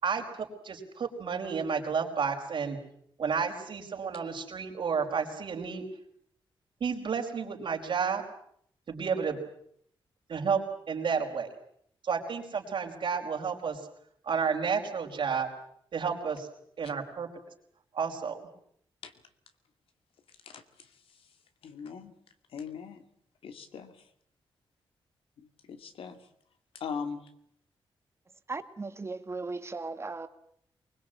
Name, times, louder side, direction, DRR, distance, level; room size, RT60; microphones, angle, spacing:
voice 1, 0.0-2.8 3.2-5.8 6.8-8.2 8.9-9.4 10.3-10.6 10.9-11.5 12.0-13.8 14.2-15.5 15.9-16.5 16.8-17.3 17.9-18.5, right 6 dB, 65° right, 2 dB, 4.8 m, -31 dB
voice 2, 21.6-22.1 22.5-23.0 23.4-23.9 25.7-26.2 26.7-27.2, left 6 dB, 85° left, 8 dB, 2.5 m, -39 dB
voice 3, 28.5-30.3, right 3 dB, 30° right, 9 dB, 1.9 m, -37 dB
23.5 x 21.0 x 8.9 m, 0.68 s
cardioid pair, 100°, 9 cm